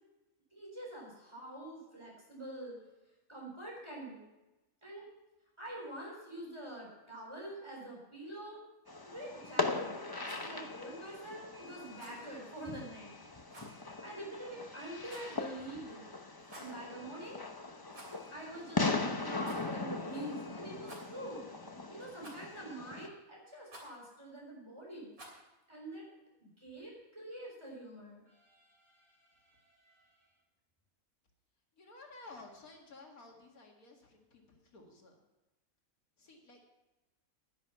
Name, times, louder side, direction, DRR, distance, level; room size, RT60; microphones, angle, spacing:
voice 1, 0.5-2.8 3.3-4.2 4.8-5.0 5.6-8.6 9.1-10.0 10.4-13.1 14.0-16.1 16.6-17.4 18.3-18.9 19.2-21.5 21.9-25.1 25.7-26.1 26.4-30.2, right 1 dB, 20° right, -3 dB, 4.0 m, -46 dB
Fireworks, 8.9-23.1, left 3 dB, 20° left, 0.7 m, -39 dB
Rattle, 10.1-10.5 11.9-12.2 13.5-13.8 15.0-15.4 16.4-16.8 17.9-18.3 18.6-18.7 19.4-19.7 20.8-21.3 22.2-22.6 23.7-24.0 25.1-25.5, right 2 dB, 75° right, 3.6 m, -52 dB
voice 2, 31.7-35.2 36.2-36.7, left 3 dB, 90° left, 1 dB, 2.5 m, -54 dB
11.0 x 10.5 x 5.7 m, 1.0 s
omnidirectional pair, 1.5 m